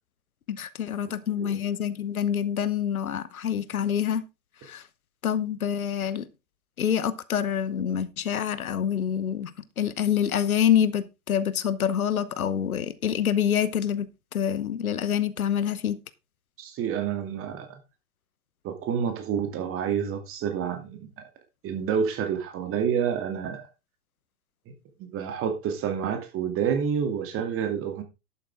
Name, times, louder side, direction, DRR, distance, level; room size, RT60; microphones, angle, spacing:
voice 1, 0.5-4.2 4.6-4.8 5.2-6.3 6.8-9.5 9.8-16.0, left 9 dB, 70° left, 1.0 m, -26 dB
voice 2, 16.6-17.8 18.6-21.1 21.6-23.7 25.1-28.0, right 7 dB, 30° right, 2.5 m, -28 dB
11.5 x 8.3 x 3.5 m
figure-of-eight pair, 100°, 44 cm